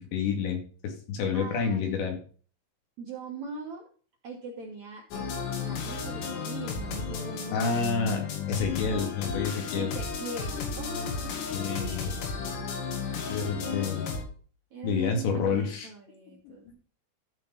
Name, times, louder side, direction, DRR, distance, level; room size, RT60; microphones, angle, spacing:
voice 1, 0.0-2.2 7.5-8.2 8.5-9.9 11.5-12.2 13.3-14.1 14.8-15.9 16.7-16.8, left 5 dB, 65° left, 3 dB, 4.2 m, -29 dB
voice 2, 1.3-2.0 3.0-3.9 4.2-7.9 9.7-12.2 12.8-14.1 14.7-16.7, right 3 dB, 85° right, -1 dB, 1.6 m, -42 dB
sound 1, 5.1-14.2, left 5 dB, 85° left, 4.8 m, -33 dB
13.0 x 5.3 x 5.4 m, 0.41 s
omnidirectional pair, 5.8 m